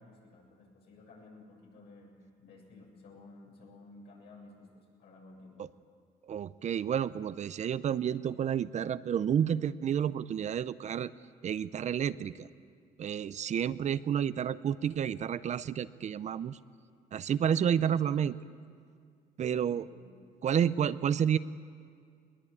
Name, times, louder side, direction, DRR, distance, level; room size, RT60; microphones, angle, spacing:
voice 1, 0.0-5.7 19.5-20.1, left 2 dB, 75° left, -1 dB, 7.3 m, -54 dB
voice 2, 6.3-11.1 11.4-12.5 13.0-16.6 17.1-18.4 19.4-19.8 20.4-21.4, right 8 dB, 45° right, 15 dB, 0.6 m, -30 dB
21.0 x 21.0 x 8.6 m, 2.2 s
cardioid pair, 110°, 17 cm